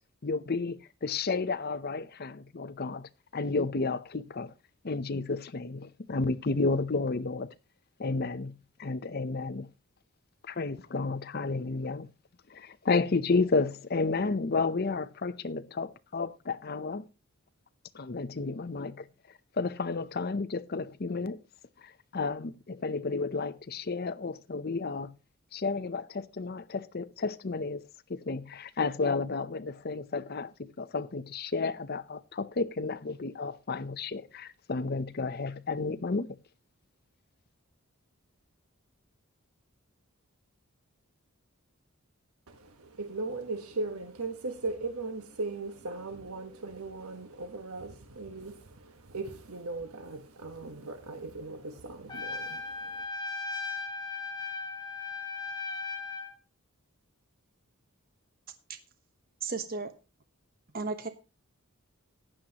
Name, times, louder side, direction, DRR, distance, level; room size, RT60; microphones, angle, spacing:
voice 1, 0.2-4.5 4.8-7.5 8.0-9.7 10.4-12.1 12.5-17.1 17.9-19.1 19.5-21.4 21.8-25.2 25.5-36.3, left 3 dB, 45° left, 0.7 m, -32 dB
voice 2, 42.5-53.1, right 3 dB, 80° right, 1.3 m, -38 dB
Trumpet, 52.1-56.3, left 4 dB, 20° left, 1.3 m, -37 dB
voice 3, 59.4-59.9 60.7-61.1, right 4 dB, 40° right, 1.1 m, -33 dB
15.0 x 10.0 x 2.9 m
head